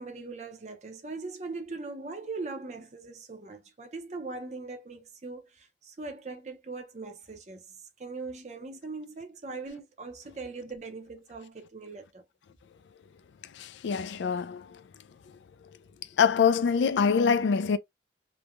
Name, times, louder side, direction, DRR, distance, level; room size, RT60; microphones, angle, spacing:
voice 1, 0.0-12.2, right 3 dB, 40° right, 0.6 m, -40 dB
voice 2, 13.5-14.8 16.2-17.8, left 6 dB, 85° left, 0.4 m, -24 dB
3.1 x 2.1 x 2.4 m
head